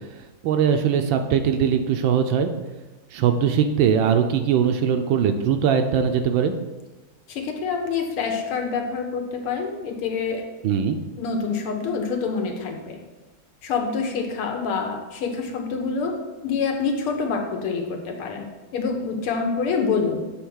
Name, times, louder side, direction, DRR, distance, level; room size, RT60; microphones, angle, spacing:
voice 1, 0.4-2.5 3.1-6.5 10.6-11.0, right 7 dB, 75° right, 6 dB, 1.2 m, -21 dB
voice 2, 7.3-10.4 11.2-13.0 13.6-16.2 16.4-18.5 18.7-20.2, left 5 dB, 85° left, 3 dB, 1.9 m, -26 dB
8.0 x 3.5 x 6.3 m, 1.2 s
omnidirectional pair, 2.4 m